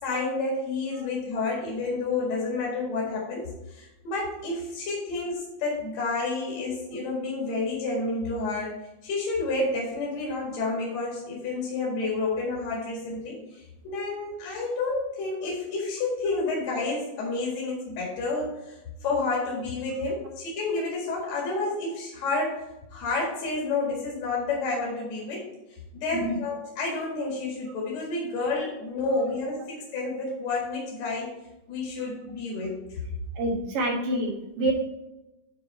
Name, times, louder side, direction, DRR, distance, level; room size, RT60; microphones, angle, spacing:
voice 1, 0.0-8.7 9.0-22.6 22.9-25.5 25.9-31.3 31.7-32.8, left 3 dB, 55° left, -4 dB, 3.0 m, -30 dB
voice 2, 33.4-34.7, right 1 dB, 85° right, -3 dB, 3.7 m, -27 dB
10.0 x 4.4 x 4.2 m, 0.96 s
omnidirectional pair, 3.7 m